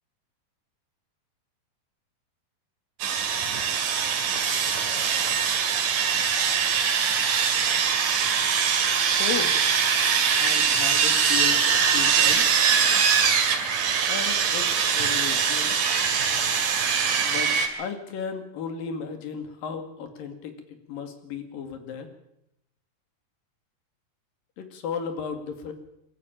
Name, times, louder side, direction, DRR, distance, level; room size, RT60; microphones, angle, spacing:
Sawing, 3.0-17.7, right 7 dB, 80° right, 3.9 m, -22 dB
voice 1, 9.0-9.6 10.4-12.6 14.1-15.8 17.2-22.1 24.6-25.7, left 6 dB, 85° left, 7 dB, 4.0 m, -35 dB
23.0 x 13.5 x 8.8 m, 0.80 s
omnidirectional pair, 4.0 m